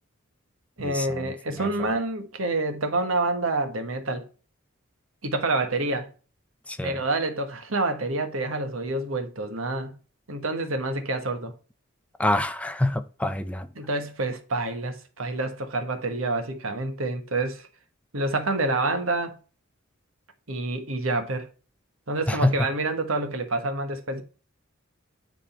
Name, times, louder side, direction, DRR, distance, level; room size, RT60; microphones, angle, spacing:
voice 1, 0.8-4.3 5.2-6.1 6.8-9.9 10.3-11.5 13.7-17.7 18.1-19.4 20.5-21.5 22.1-24.2, right 2 dB, 85° right, 1.4 m, -27 dB
voice 2, 12.2-13.7 22.3-22.6, left 1 dB, 5° left, 0.5 m, -25 dB
9.4 x 3.8 x 4.3 m
head